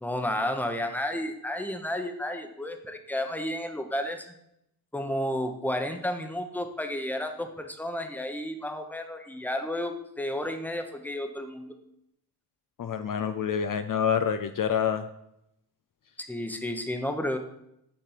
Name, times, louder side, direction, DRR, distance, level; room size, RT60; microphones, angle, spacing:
voice 1, 0.0-4.3 4.9-11.7 16.2-17.4, left 1 dB, 5° left, 6 dB, 0.9 m, -32 dB
voice 2, 12.8-15.1, left 7 dB, 55° left, 9 dB, 0.5 m, -27 dB
6.9 x 6.2 x 5.7 m, 0.79 s
wide cardioid pair, 105°, 40 cm